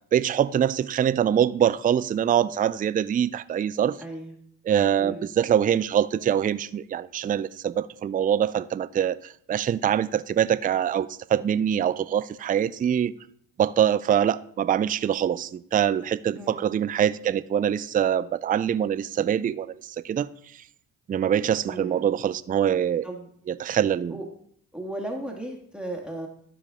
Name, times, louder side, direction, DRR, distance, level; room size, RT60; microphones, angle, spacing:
voice 1, 0.1-4.0 4.7-9.2 9.5-13.1 13.6-19.7 20.0-20.3 21.1-23.1 23.5-24.2, right 9 dB, 25° right, 0.3 m, -24 dB
voice 2, 4.0-4.4 5.0-5.3 16.3-16.6 21.6-22.1 23.0-23.3 24.1-24.2 24.7-26.3, right 1 dB, 5° right, 1.8 m, -36 dB
12.0 x 4.8 x 3.6 m
supercardioid pair, 55°, 36 cm